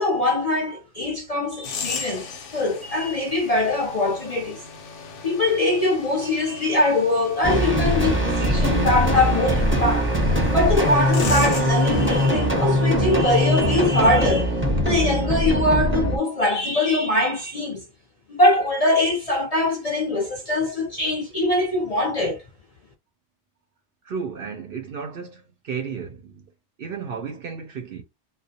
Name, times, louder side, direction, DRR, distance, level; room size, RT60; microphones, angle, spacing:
voice 1, 0.0-2.3 2.5-4.6 5.2-10.1 10.5-14.5 14.8-17.8 18.3-22.4, left 2 dB, 45° left, 0.5 m, -22 dB
sound 1, 1.6-12.3, left 5 dB, 90° left, 1.0 m, -37 dB
sound 2, 7.4-16.2, equal, 10° right, 0.7 m, -21 dB
voice 2, 24.1-26.4 26.8-28.0, right 6 dB, 60° right, 0.7 m, -33 dB
2.3 x 2.1 x 2.7 m
omnidirectional pair, 1.2 m